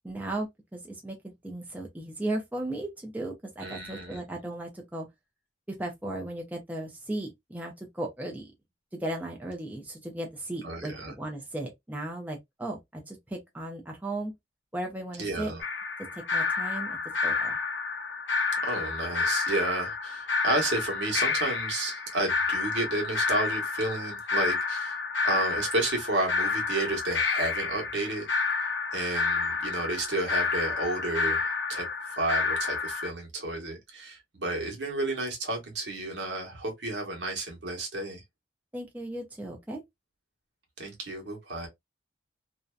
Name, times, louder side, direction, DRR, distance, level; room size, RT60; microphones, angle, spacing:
voice 1, 0.0-5.1 5.7-8.5 8.9-14.3 14.7-15.5 16.1-17.6 38.7-39.8, right 1 dB, 10° right, 0.5 m, -36 dB
voice 2, 3.6-4.2 10.6-11.1 15.2-15.6 18.6-25.0 25.2-28.3 28.9-31.9 32.2-38.2 40.8-41.7, right 2 dB, 75° right, 1.0 m, -31 dB
sound 1, 15.6-33.1, left 4 dB, 80° left, 0.6 m, -30 dB
2.6 x 2.1 x 2.3 m
head